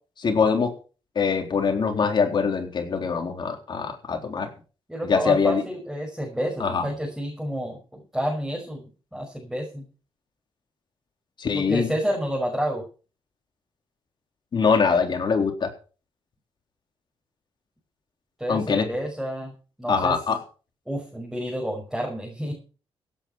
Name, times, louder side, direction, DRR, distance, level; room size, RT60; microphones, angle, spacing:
voice 1, 0.2-0.7 1.2-4.5 5.0-5.6 6.6-6.8 11.4-11.9 14.5-15.7 18.5-18.9 19.9-20.4, left 5 dB, 50° left, 4 dB, 3.9 m, -23 dB
voice 2, 4.9-9.9 11.5-12.8 18.4-19.5 19.8-20.2 20.9-22.5, equal, 5° right, -1 dB, 5.7 m, -29 dB
16.5 x 9.0 x 5.8 m, 0.37 s
cardioid pair, 95°, 10 cm